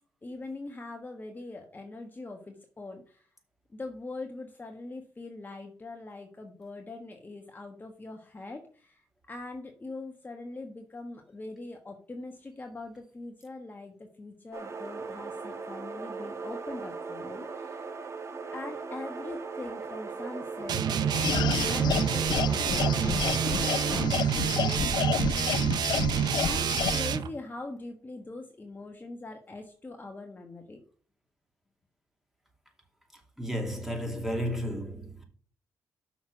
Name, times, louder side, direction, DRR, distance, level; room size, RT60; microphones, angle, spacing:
voice 1, 0.2-3.3 3.7-18.0 18.5-25.9 26.4-30.8, left 2 dB, 25° left, 1.4 m, -42 dB
sound 1, 14.5-24.1, right 4 dB, 40° right, 1.6 m, -38 dB
sound 2, 20.7-27.3, right 8 dB, 70° right, 0.8 m, -27 dB
sound 3, 21.1-27.1, left 9 dB, 75° left, 0.5 m, -31 dB
voice 2, 33.4-35.2, equal, 5° right, 2.8 m, -33 dB
6.2 x 5.9 x 6.0 m
cardioid pair, 85°, 7 cm